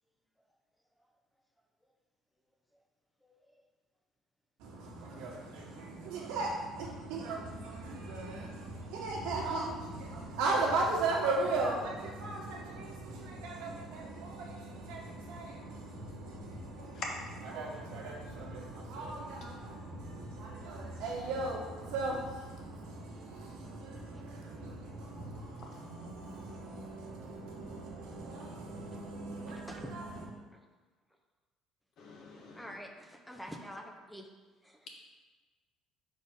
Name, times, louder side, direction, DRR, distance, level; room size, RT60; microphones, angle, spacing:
voice 1, 4.6-30.2, right 3 dB, 85° right, 1.6 m, -37 dB
voice 2, 32.0-32.7, left 6 dB, 55° left, 1.3 m, -44 dB
voice 3, 32.6-34.3 34.6-34.8, equal, ahead, 0.6 m, -46 dB
5.2 x 4.2 x 5.3 m
cardioid pair, 130°, 0 cm